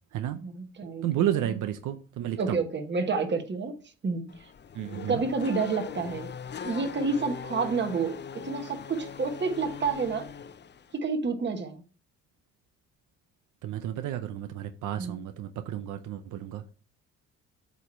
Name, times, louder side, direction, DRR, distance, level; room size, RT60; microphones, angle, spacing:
voice 1, 0.4-1.6 2.4-3.7 4.0-4.2 5.1-6.3 6.6-8.1 8.4-10.3 11.0-11.8 15.0-15.2, right 4 dB, 35° right, 1.3 m, -29 dB
voice 2, 1.0-2.6 4.7-5.2 13.6-16.7, right 11 dB, 85° right, 0.7 m, -31 dB
Race car auto racing / Accelerating revving vroom, 4.3-11.0, left 7 dB, 35° left, 0.6 m, -41 dB
8.2 x 3.1 x 5.5 m
cardioid pair, 90°, 30 cm